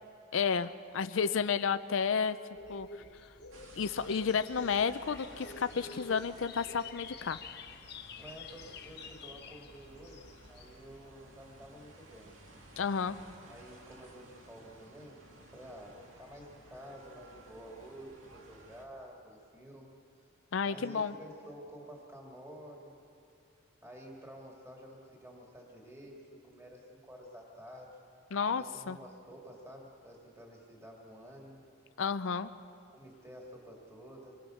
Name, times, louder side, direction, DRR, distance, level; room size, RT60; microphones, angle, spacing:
voice 1, 0.3-2.4 2.7-2.9 3.8-7.4 12.8-13.2 20.5-21.1 28.3-29.0 32.0-32.5, left 6 dB, 80° left, 11 dB, 0.5 m, -31 dB
sound 1, 2.5-11.1, left 4 dB, 55° left, 1.1 m, -49 dB
sound 2, 3.5-18.9, right 1 dB, 85° right, 2.4 m, -56 dB
voice 2, 8.2-12.4 13.5-19.9 20.2-20.3 20.6-23.0 23.8-27.9 28.4-31.7 32.9-34.4, equal, 15° right, -1 dB, 2.3 m, -50 dB
26.0 x 21.0 x 6.4 m, 2.5 s
head